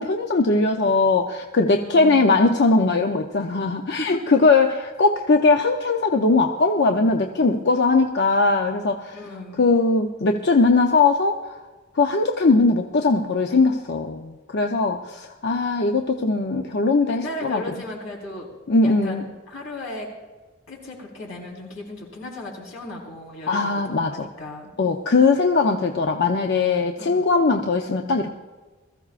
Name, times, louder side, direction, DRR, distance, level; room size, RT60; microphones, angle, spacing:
voice 1, 0.0-9.2 9.6-11.6 11.9-17.6 18.7-19.3 23.5-24.3 24.8-28.3, left 3 dB, 60° left, 4 dB, 0.7 m, -20 dB
voice 2, 1.7-2.1 4.0-4.2 9.1-9.6 17.0-18.5 18.8-20.1 20.7-23.7 24.1-24.7 27.0-27.3, left 1 dB, 90° left, -3 dB, 4.4 m, -36 dB
21.5 x 14.5 x 2.5 m, 1.3 s
head